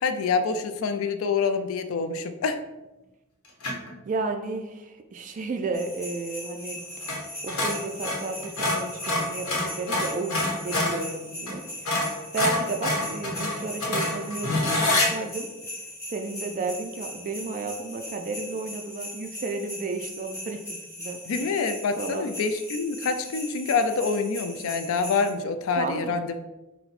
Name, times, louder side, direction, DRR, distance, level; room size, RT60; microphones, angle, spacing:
voice 1, 0.0-2.6 21.3-26.4, left 4 dB, 65° left, 9 dB, 0.3 m, -26 dB
sound 1, 3.6-3.9 7.0-7.2 7.5-11.0 11.5-11.6 11.8-15.1, left 2 dB, 85° left, 1.0 m, -26 dB
voice 2, 4.1-6.8 7.4-12.0 12.3-15.5 16.1-21.2 22.0-22.3 25.8-26.2, right 3 dB, 35° right, 5 dB, 0.3 m, -33 dB
sound 2, 5.7-25.3, left 1 dB, 15° left, 1.1 m, -39 dB
4.2 x 2.1 x 4.0 m, 1.0 s
head